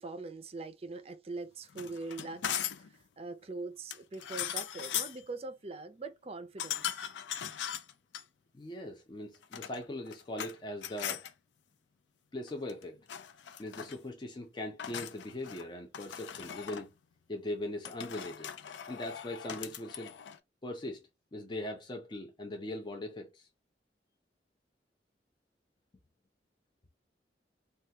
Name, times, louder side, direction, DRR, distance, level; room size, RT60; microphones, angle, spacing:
voice 1, 0.0-7.1, right 3 dB, 35° right, 0.4 m, -43 dB
sound 1, 1.7-2.9 3.9-5.2 6.6-8.2 9.3-10.5 10.8-11.3 12.5-12.8 13.1-14.0 14.8-15.7 15.9-16.9 17.8-20.4, left 9 dB, 85° left, 0.4 m, -39 dB
voice 2, 8.5-11.2 12.3-13.0 13.6-16.9 17.3-18.5 18.9-20.1 20.6-23.5, left 1 dB, 25° left, 0.5 m, -40 dB
3.3 x 2.3 x 2.7 m
head